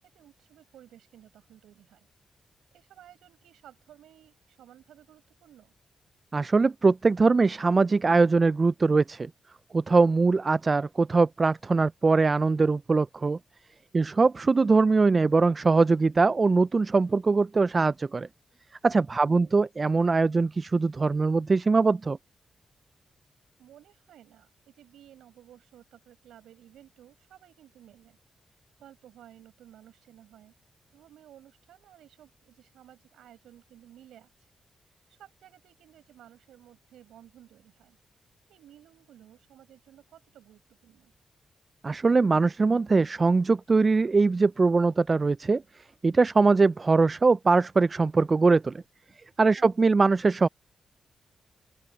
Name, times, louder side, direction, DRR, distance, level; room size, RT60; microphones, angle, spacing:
voice 1, 0.0-2.1 2.7-5.7 19.2-19.5 23.6-28.2 28.5-30.5 30.9-34.5 35.1-38.0 38.5-41.1 49.6-49.7, right 11 dB, 90° right, 7.9 m, -55 dB
voice 2, 6.3-9.3 9.7-13.4 13.9-18.3 18.8-22.2 41.8-45.6 46.0-48.7 49.4-50.5, right 4 dB, 45° right, 0.4 m, -22 dB
open air
supercardioid pair, 45°, 0 cm